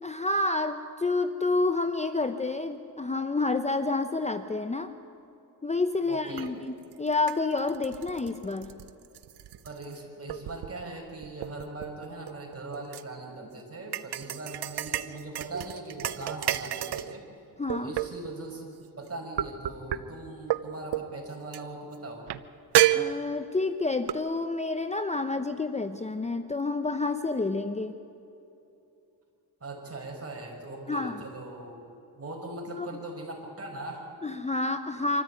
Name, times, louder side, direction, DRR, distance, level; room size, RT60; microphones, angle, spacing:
voice 1, 0.0-4.9 5.6-8.7 17.6-17.9 22.9-27.9 30.9-31.2 32.8-32.9 34.2-35.2, left 3 dB, 15° left, 9 dB, 0.8 m, -29 dB
voice 2, 6.1-6.5 9.6-17.3 17.7-18.7 19.0-22.3 29.6-31.8 32.2-34.1, right 2 dB, 35° right, 1 dB, 5.7 m, -40 dB
sound 1, 6.4-6.5 6.9-10.0 10.3-10.8 11.2-13.0 13.9-17.2 17.7-18.4 19.4-20.0 20.5-20.6 20.9-21.1 21.5-21.6 22.3-22.4 22.7-23.6 24.1-24.2, right 13 dB, 80° right, 0.8 m, -30 dB
25.5 x 14.5 x 9.2 m, 2.9 s
cardioid pair, 90°, 39 cm